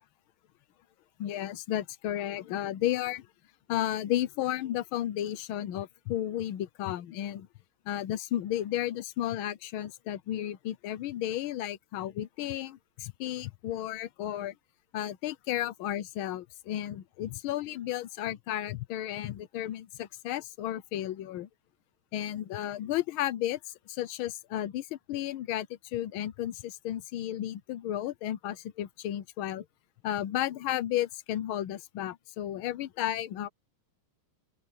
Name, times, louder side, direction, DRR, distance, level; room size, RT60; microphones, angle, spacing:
voice 1, 1.2-3.3 3.7-7.5 7.9-14.5 14.9-21.5 22.1-23.6 23.9-29.6 30.0-33.5, left 12 dB, 80° left, 1.6 m, -33 dB
open air
omnidirectional pair, 2.3 m